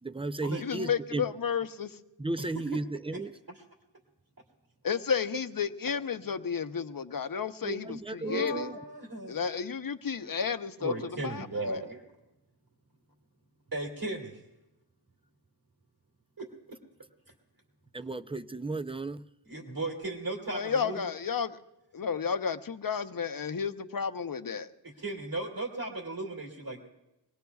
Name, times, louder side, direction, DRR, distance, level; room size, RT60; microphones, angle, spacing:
voice 1, 0.0-1.3 2.2-3.3 7.6-8.8 17.9-19.2, right 2 dB, 15° right, 11 dB, 0.5 m, -35 dB
voice 2, 0.6-2.0 4.8-8.7 9.3-11.8 20.5-21.6 21.9-24.7, left 6 dB, 55° left, 9 dB, 0.8 m, -32 dB
voice 3, 8.2-9.4 10.8-12.0 13.7-14.4 16.4-16.5 19.5-21.1 25.0-26.8, right 2 dB, 55° right, -1 dB, 2.6 m, -36 dB
24.5 x 18.5 x 2.4 m, 0.94 s
wide cardioid pair, 55°, 42 cm